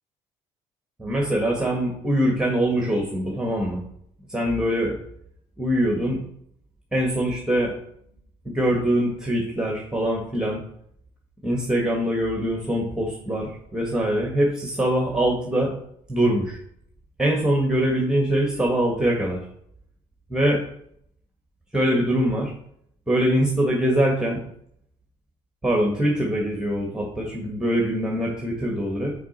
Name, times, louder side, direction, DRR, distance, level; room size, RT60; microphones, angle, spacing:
voice 1, 1.0-3.8 4.3-4.9 5.6-6.2 6.9-7.7 8.4-10.6 11.4-15.7 16.1-16.6 17.2-19.4 20.3-20.6 21.7-22.5 23.1-24.4 25.6-29.1, right 1 dB, 5° right, -1 dB, 1.6 m, -23 dB
5.9 x 5.0 x 4.2 m, 0.69 s
supercardioid pair, 80°, 13 cm